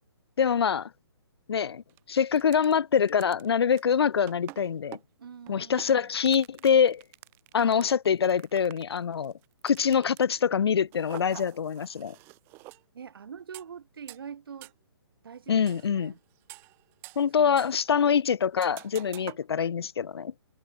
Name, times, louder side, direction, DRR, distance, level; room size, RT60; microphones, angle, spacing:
voice 1, 0.4-0.9 1.5-5.0 5.5-7.0 7.5-9.3 9.6-12.2 15.5-16.1 17.2-20.3, left 7 dB, 70° left, 0.6 m, -25 dB
sound 1, 1.9-2.0 2.4-2.8 3.1-10.4 10.9-12.8 13.5-13.7 14.1-14.2 14.6-14.7 15.7-16.0 16.4-17.3 17.6-17.9 18.6-19.4, right 23 dB, 15° right, 1.2 m, -47 dB
voice 2, 5.2-6.1 12.9-14.7 15.2-16.2 17.3-17.7, right 7 dB, 60° right, 4.6 m, -44 dB
hypercardioid pair, 165°, 14 cm